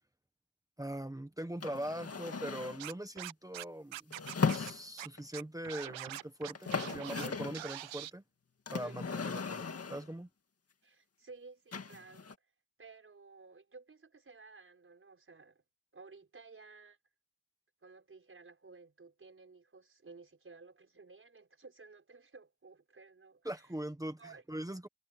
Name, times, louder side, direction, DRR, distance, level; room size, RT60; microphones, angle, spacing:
voice 1, 0.8-4.1 4.5-8.2 8.7-10.3 23.4-24.2 24.5-24.9, right 1 dB, 10° right, 1.3 m, -41 dB
sound 1, 1.6-2.9 4.1-5.2 6.2-6.3 6.5-7.7 8.7-10.1 11.7-12.3, left 5 dB, 30° left, 2.1 m, -37 dB
Scratching (performance technique), 2.8-3.6 3.9-4.7 5.0-5.1 5.3-7.3 7.5-8.1, right 14 dB, 80° right, 0.7 m, -43 dB
voice 2, 8.8-9.2 10.8-12.3 12.8-15.6 15.9-17.0 17.8-23.7 24.2-24.4, right 4 dB, 30° right, 5.7 m, -55 dB
wide cardioid pair, 175°, 45 cm